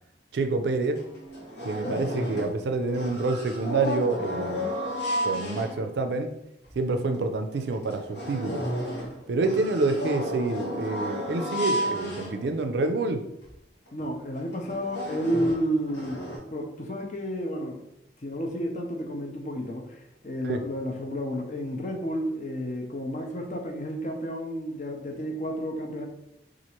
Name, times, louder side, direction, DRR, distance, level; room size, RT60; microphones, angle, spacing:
voice 1, 0.3-1.1 1.6-4.7 5.2-6.4 6.8-8.6 9.3-13.3 20.4-20.6, right 3 dB, 70° right, 7 dB, 0.4 m, -27 dB
sound 1, 0.5-0.6 1.0-2.6 2.9-6.1 6.7-6.8 7.1-7.2 7.7-12.9 13.4-13.5 13.9-14.0 14.5-16.4, equal, 80° left, 1.2 m, -33 dB
voice 2, 13.9-17.8 18.2-26.1, equal, 45° left, 2 dB, 0.6 m, -31 dB
2.9 x 2.5 x 4.3 m, 0.82 s
head